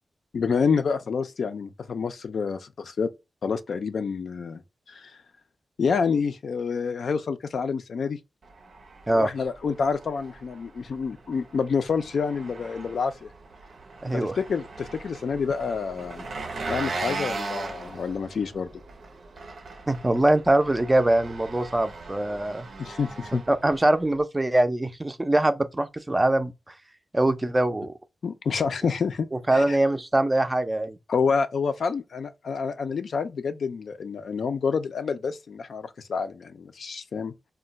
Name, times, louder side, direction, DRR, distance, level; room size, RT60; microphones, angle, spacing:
voice 1, 0.3-3.1 3.4-4.6 4.9-5.1 5.8-8.2 9.1-13.3 14.1-16.3 16.7-18.7 22.8-23.4 28.2-29.3 29.5-29.8 31.1-37.3, left 5 dB, 75° left, 0.4 m, -28 dB
Engine, 8.4-24.2, right 3 dB, 85° right, 0.6 m, -39 dB
voice 2, 14.0-14.4 19.9-22.7 23.5-26.5 27.1-27.9 29.5-31.0, right 1 dB, 20° right, 0.4 m, -23 dB
2.3 x 2.1 x 3.8 m
wide cardioid pair, 95°, 0 cm